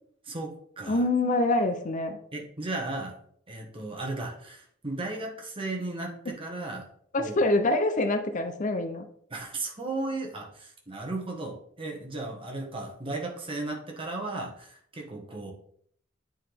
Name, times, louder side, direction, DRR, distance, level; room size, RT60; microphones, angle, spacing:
voice 1, 0.2-1.0 2.3-3.2 3.5-6.9 7.2-7.4 9.3-15.5, right 2 dB, 30° right, 0 dB, 1.3 m, -35 dB
voice 2, 0.9-2.2 7.1-9.1, left 2 dB, 40° left, 8 dB, 0.5 m, -25 dB
8.7 x 3.9 x 3.4 m, 0.63 s
head